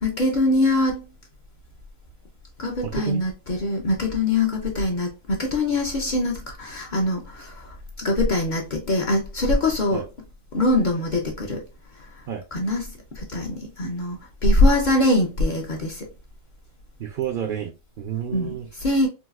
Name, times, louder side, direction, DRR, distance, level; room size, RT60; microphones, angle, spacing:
voice 1, 0.0-1.0 2.6-10.0 10.5-11.6 12.0-12.1 12.5-16.1 18.3-19.1, left 2 dB, 50° left, 0.8 m, -23 dB
voice 2, 2.8-3.3 9.9-10.0 12.3-12.4 17.0-18.7, right 10 dB, 60° right, 0.7 m, -30 dB
3.9 x 2.4 x 2.4 m
omnidirectional pair, 1.1 m